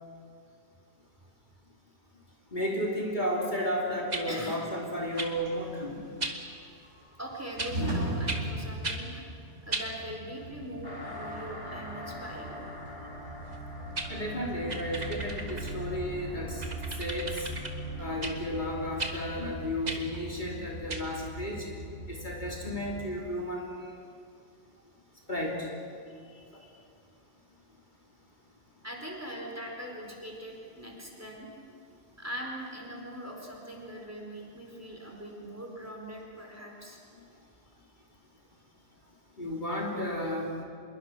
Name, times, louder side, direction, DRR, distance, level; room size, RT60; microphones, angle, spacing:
voice 1, 2.5-6.0 14.1-16.6 17.0-17.5 18.0-21.6 22.1-24.0 25.3-25.7 26.5-26.6 39.4-40.6, equal, 40° left, -2 dB, 3.2 m, -33 dB
sound 1, 4.1-4.3 5.2-5.3 6.2-6.4 7.6-7.8 8.3-8.4 8.8-9.0 9.7-9.9 13.5-13.6 14.0-14.1 14.7-15.8 16.6-17.7 18.2-18.4 19.0-19.2 19.9-20.0 20.9-21.0, right 2 dB, 35° right, 1.7 m, -35 dB
voice 2, 4.3-4.6 7.2-9.3 9.6-12.6 26.1-26.8 28.8-37.0 39.0-39.1, equal, 10° right, 0 dB, 4.1 m, -42 dB
sound 2, 5.1-23.0, equal, 70° right, 4.6 m, -41 dB
sound 3, 10.8-21.8, equal, 20° left, 3.5 m, -43 dB
26.5 x 22.0 x 6.2 m, 2.3 s
omnidirectional pair, 1.2 m